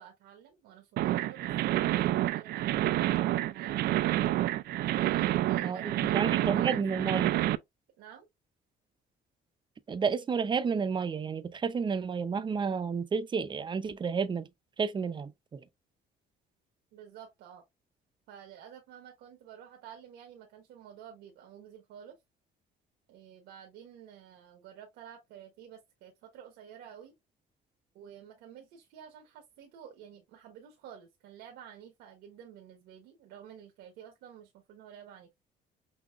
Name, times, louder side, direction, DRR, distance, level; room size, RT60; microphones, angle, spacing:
voice 1, 0.0-3.8 4.9-7.5 8.0-8.3 16.9-17.6 18.3-22.2 23.1-27.1 27.9-35.3, right 9 dB, 85° right, 1.2 m, -51 dB
sound 1, 1.0-7.5, right 14 dB, 65° right, 0.4 m, -28 dB
voice 2, 5.6-7.3 9.9-14.5 14.8-15.6, right 5 dB, 30° right, 0.6 m, -31 dB
6.1 x 2.8 x 2.4 m
cardioid pair, 110°, 17 cm